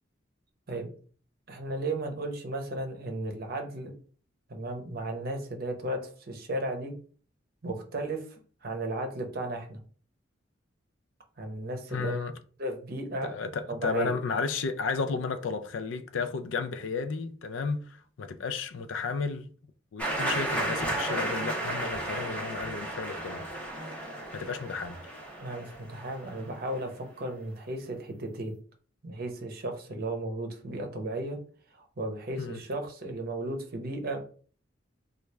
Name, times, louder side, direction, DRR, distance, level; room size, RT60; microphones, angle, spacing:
voice 1, 1.5-3.9 4.5-6.0 6.3-6.9 7.6-8.2 8.6-9.8 11.4-12.1 12.6-13.3 13.7-14.1 25.4-28.6 29.0-31.4 31.7-34.2, right 2 dB, 55° right, 0.8 m, -34 dB
voice 2, 11.9-12.3 13.2-19.5 19.9-23.4 24.3-25.0 32.4-32.6, left 5 dB, 80° left, 0.4 m, -33 dB
sound 1, 20.0-26.6, right 1 dB, 10° left, 1.1 m, -33 dB
3.1 x 2.4 x 3.3 m
head